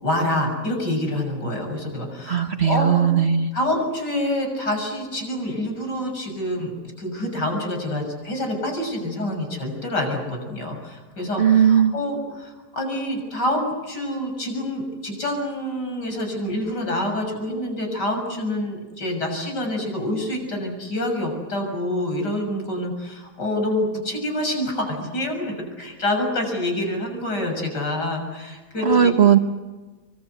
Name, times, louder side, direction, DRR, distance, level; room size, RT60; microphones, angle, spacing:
voice 1, 0.0-3.0 3.5-6.7 7.0-29.1, left 1 dB, 75° left, 7.5 m, -27 dB
voice 2, 2.3-3.5 11.4-12.0 28.8-29.4, right 8 dB, 45° right, 1.1 m, -17 dB
25.5 x 24.0 x 8.2 m
omnidirectional pair, 1.8 m